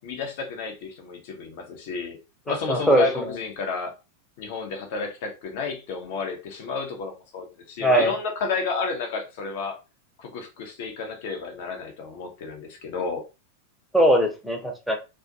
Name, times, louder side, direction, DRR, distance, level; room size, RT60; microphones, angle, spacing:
voice 1, 0.0-2.2 2.5-3.9 4.4-9.8 10.2-13.2, left 4 dB, 50° left, 0.7 m, -31 dB
voice 2, 2.5-3.3 7.8-8.1 13.9-15.0, right 1 dB, ahead, 0.7 m, -21 dB
2.5 x 2.3 x 2.5 m
figure-of-eight pair, 90°, 0 cm